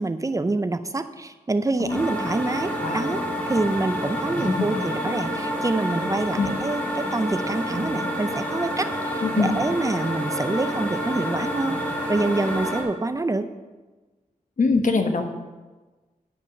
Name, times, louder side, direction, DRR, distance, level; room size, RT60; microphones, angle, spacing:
voice 1, 0.0-11.8 12.1-13.5, right 2 dB, 25° right, 10 dB, 0.6 m, -26 dB
sound 1, 1.9-12.8, equal, 10° left, 2.6 m, -28 dB
voice 2, 4.4-4.8 6.4-6.5 9.2-9.5 14.6-15.3, left 4 dB, 65° left, 5 dB, 1.2 m, -23 dB
9.8 x 6.0 x 7.0 m, 1.2 s
wide cardioid pair, 120°, 14 cm